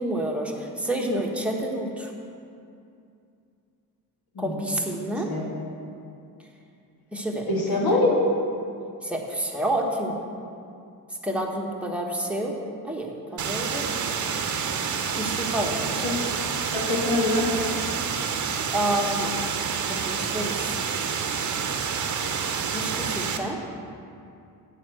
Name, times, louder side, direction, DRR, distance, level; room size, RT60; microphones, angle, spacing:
voice 1, 0.0-2.1 4.4-5.3 7.1-7.5 9.0-10.2 11.2-12.5 12.8-14.2 15.1-16.0 18.7-19.3 19.9-20.8 22.7-23.6, right 1 dB, 5° right, -1 dB, 1.3 m, -29 dB
voice 2, 7.5-8.2 16.0-16.2 16.7-17.6, left 2 dB, 65° left, -3 dB, 2.6 m, -24 dB
sound 1, 13.4-23.4, right 6 dB, 50° right, 0.9 m, -28 dB
8.6 x 5.8 x 7.7 m, 2.5 s
cardioid pair, 100°, 39 cm